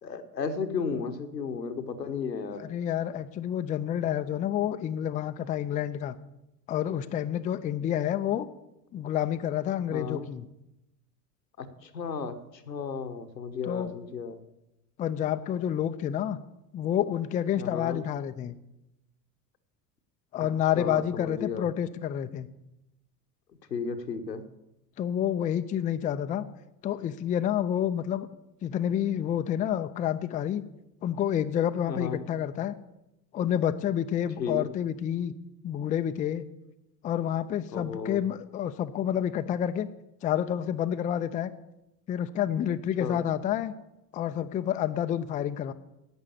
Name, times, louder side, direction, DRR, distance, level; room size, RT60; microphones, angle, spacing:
voice 1, 0.0-2.7 9.9-10.3 11.6-12.3 12.7-14.4 17.6-18.0 20.4-20.5 20.7-21.7 23.7-24.4 31.9-32.2 34.4-34.7 37.7-38.2 43.0-43.2, left 5 dB, 85° left, 8 dB, 1.1 m, -34 dB
voice 2, 2.6-6.2 6.7-8.5 8.9-10.5 13.6-13.9 15.0-16.4 16.7-18.6 20.3-22.5 25.0-26.4 26.8-28.3 28.6-30.6 31.0-32.7 33.3-35.3 35.6-36.5 37.0-39.9 40.2-41.5 42.1-43.7 44.1-45.7, left 10 dB, 15° left, 9 dB, 0.4 m, -29 dB
11.0 x 8.2 x 7.3 m, 0.89 s
figure-of-eight pair, 70°, 49 cm